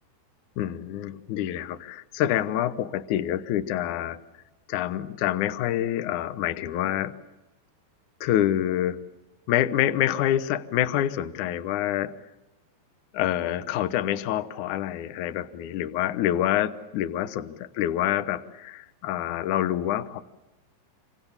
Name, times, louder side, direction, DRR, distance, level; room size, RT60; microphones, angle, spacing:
voice 1, 0.6-4.2 4.7-7.1 8.2-9.0 9.5-12.1 13.1-20.2, left 12 dB, 80° left, 11 dB, 1.7 m, -27 dB
27.5 x 26.0 x 7.2 m, 1.0 s
omnidirectional pair, 5.3 m